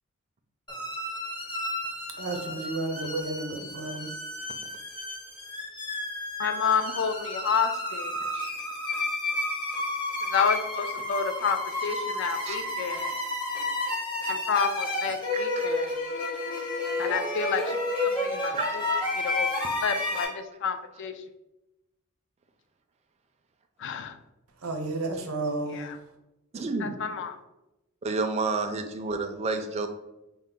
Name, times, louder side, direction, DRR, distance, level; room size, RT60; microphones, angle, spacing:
sound 1, 0.7-20.2, left 2 dB, 20° left, 0.7 m, -31 dB
voice 1, 2.2-4.1 24.6-25.9, right 2 dB, 90° right, 4 dB, 0.7 m, -32 dB
voice 2, 6.4-8.5 10.3-13.2 14.3-15.9 17.0-18.8 19.1-19.5 19.8-21.1 23.8-24.2 25.7-26.0 26.8-27.4, left 6 dB, 60° left, 8 dB, 0.4 m, -30 dB
voice 3, 12.4-12.9 15.3-15.7 18.5-18.6 20.2-20.3 26.5-27.0 28.0-29.9, right 3 dB, 30° right, 5 dB, 0.4 m, -30 dB
4.3 x 2.1 x 3.6 m, 0.93 s
head